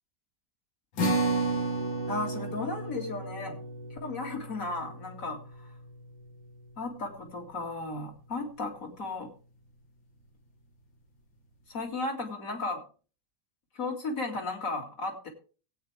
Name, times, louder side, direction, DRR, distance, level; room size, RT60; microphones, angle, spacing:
sound 1, 1.0-7.6, right 2 dB, 85° left, 2.7 m, -33 dB
voice 1, 2.1-3.6 3.9-5.7 6.8-9.3 11.7-12.8 13.7-15.3, left 3 dB, 45° left, 2 dB, 2.7 m, -35 dB
18.0 x 8.9 x 3.3 m, 0.38 s
omnidirectional pair, 2.1 m